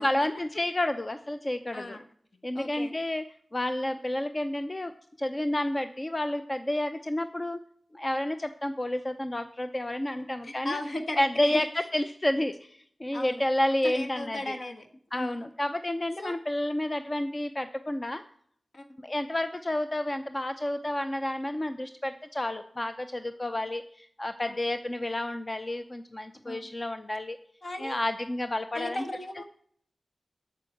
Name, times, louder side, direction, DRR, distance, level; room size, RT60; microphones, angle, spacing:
voice 1, 0.0-2.0 2.4-3.2 3.5-4.9 5.2-7.6 7.9-10.8 11.2-11.7 11.9-14.5 15.1-18.2 19.0-27.4 27.8-29.0, left 1 dB, 30° left, 9 dB, 0.5 m, -30 dB
voice 2, 1.7-2.0 2.5-2.9 10.4-11.6 13.1-13.4 13.8-14.9 15.1-15.5 16.2-16.3 18.7-18.9 23.4-23.6 24.5-24.6 26.4-26.7 27.6-28.0 28.7-29.4, left 1 dB, 55° left, 5 dB, 1.3 m, -36 dB
8.8 x 7.1 x 7.8 m, 0.63 s
wide cardioid pair, 85°, 0 cm